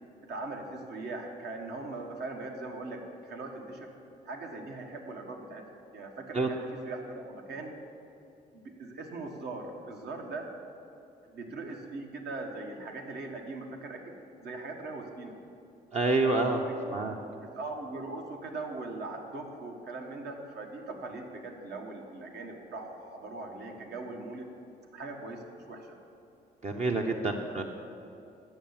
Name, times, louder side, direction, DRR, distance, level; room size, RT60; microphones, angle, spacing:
voice 1, 0.3-3.9 4.2-5.6 5.9-7.7 8.5-10.5 11.3-14.0 14.4-15.3 16.6-17.0 17.4-24.5 24.9-25.9, right 2 dB, 65° right, 2 dB, 1.4 m, -40 dB
voice 2, 15.9-16.6 16.9-17.1 26.6-27.6, right 3 dB, 40° right, 1 dB, 0.8 m, -27 dB
9.0 x 6.8 x 7.3 m, 2.7 s
supercardioid pair, 70°, 18 cm